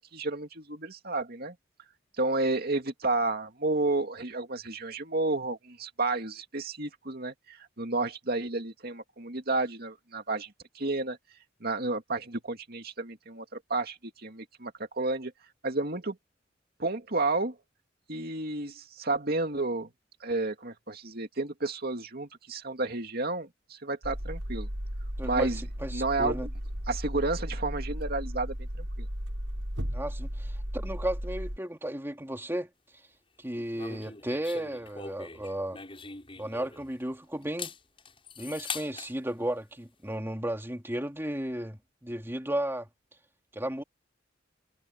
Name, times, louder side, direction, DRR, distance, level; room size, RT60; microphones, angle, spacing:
voice 1, 0.0-1.5 2.2-11.2 11.6-15.3 15.6-16.2 16.8-17.5 18.1-19.9 20.2-24.7 25.2-25.6 25.9-26.4 26.9-28.5 29.0-29.1, right 2 dB, 50° right, 2.4 m, -31 dB
sound 1, 24.0-31.6, equal, 85° right, 6.6 m, -35 dB
voice 2, 25.2-25.5 25.8-26.5 29.9-32.7 33.4-35.8 36.4-37.7 38.4-42.9 43.5-43.8, right 1 dB, 10° right, 2.9 m, -34 dB
sound 2, 33.7-37.0 37.4-39.1, left 5 dB, 30° left, 7.3 m, -41 dB
head